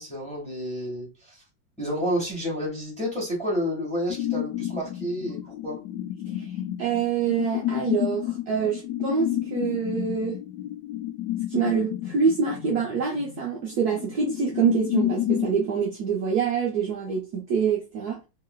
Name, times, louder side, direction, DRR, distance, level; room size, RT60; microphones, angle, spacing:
voice 1, 0.0-1.4 1.8-5.8, equal, 5° left, 1.2 m, -30 dB
sound 1, 4.1-15.5, left 13 dB, 75° left, 0.9 m, -30 dB
voice 2, 6.3-10.4 11.5-18.2, right 6 dB, 65° right, 1.0 m, -26 dB
3.1 x 2.9 x 2.2 m
omnidirectional pair, 2.1 m